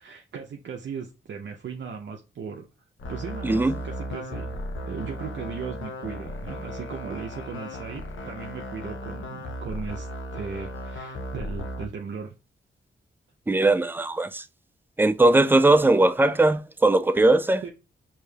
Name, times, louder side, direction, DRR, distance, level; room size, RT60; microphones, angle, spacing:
voice 1, 0.0-2.7 3.1-10.1 10.3-12.3 17.6-17.7, right 6 dB, 65° right, 0.6 m, -37 dB
sound 1, 3.0-11.9, left 1 dB, 70° left, 0.7 m, -36 dB
voice 2, 13.5-14.4 15.0-17.6, right 2 dB, 10° right, 0.4 m, -19 dB
4.7 x 2.8 x 2.2 m
cardioid pair, 50°, 21 cm